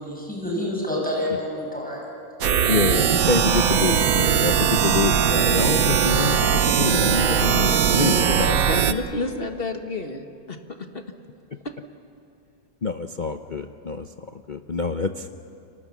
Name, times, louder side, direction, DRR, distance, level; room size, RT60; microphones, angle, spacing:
voice 1, 0.0-2.0, left 1 dB, 5° left, -2 dB, 5.9 m, -28 dB
sound 1, 2.4-8.9, right 8 dB, 60° right, 1.2 m, -20 dB
voice 2, 2.7-9.1 12.8-14.1 14.3-15.3, left 5 dB, 60° left, 6 dB, 0.5 m, -26 dB
voice 3, 7.1-8.4 8.7-10.6 10.9-11.0, left 3 dB, 35° left, 6 dB, 1.5 m, -30 dB
30.0 x 24.5 x 7.3 m, 2.6 s
omnidirectional pair, 1.9 m